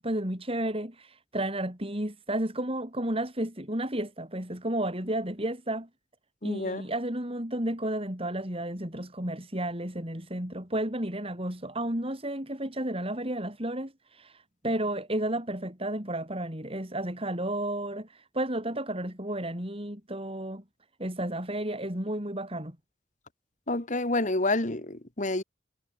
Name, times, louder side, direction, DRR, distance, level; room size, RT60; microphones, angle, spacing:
voice 1, 0.0-5.9 6.4-20.6 21.0-22.8, right 1 dB, 30° right, 6.4 m, -32 dB
voice 2, 6.4-6.8 23.7-25.4, left 2 dB, 40° left, 2.3 m, -28 dB
head